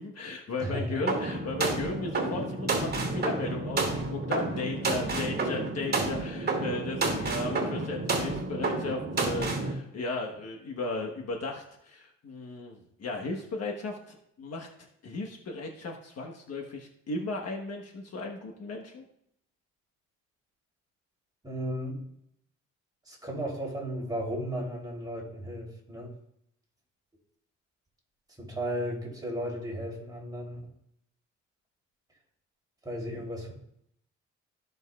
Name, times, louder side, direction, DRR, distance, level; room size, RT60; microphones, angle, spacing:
voice 1, 0.0-14.7 15.0-19.1, left 3 dB, 55° left, 1 dB, 1.3 m, -35 dB
voice 2, 0.6-1.0 21.4-22.0 23.0-26.1 28.4-30.6 32.8-33.5, equal, 15° right, -2 dB, 3.2 m, -34 dB
sound 1, 1.1-9.7, right 3 dB, 35° right, 2.4 m, -30 dB
15.0 x 5.3 x 2.4 m, 0.75 s
cardioid pair, 90°, 30 cm